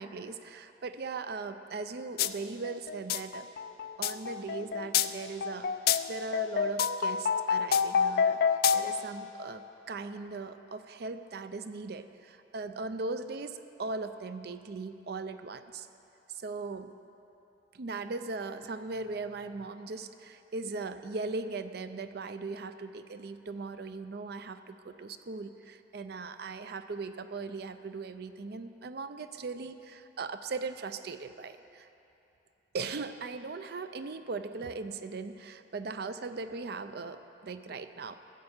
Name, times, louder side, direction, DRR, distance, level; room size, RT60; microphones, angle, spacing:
voice 1, 0.0-3.5 4.0-15.9 16.3-16.9 17.7-31.9 32.7-38.2, right 3 dB, 60° right, 10 dB, 0.5 m, -39 dB
sound 1, 2.2-2.3 2.6-9.1, left 7 dB, 55° left, 0.4 m, -28 dB
14.0 x 7.7 x 7.2 m, 2.9 s
head